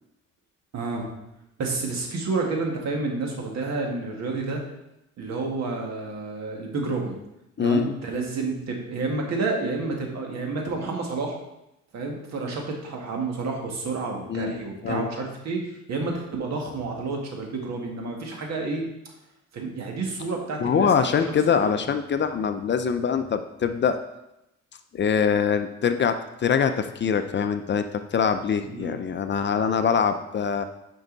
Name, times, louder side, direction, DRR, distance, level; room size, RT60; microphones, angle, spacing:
voice 1, 0.7-1.1 1.6-4.6 5.2-7.1 7.6-11.4 11.9-18.8 19.5-21.2 21.6-21.8 28.7-29.0, right 3 dB, 60° right, 1 dB, 1.9 m, -30 dB
voice 2, 7.6-7.9 14.3-15.1 20.6-24.0 24.9-27.9 28.1-30.6, left 7 dB, 40° left, 8 dB, 0.5 m, -24 dB
9.5 x 5.4 x 4.0 m, 0.88 s
cardioid pair, 125°, 30 cm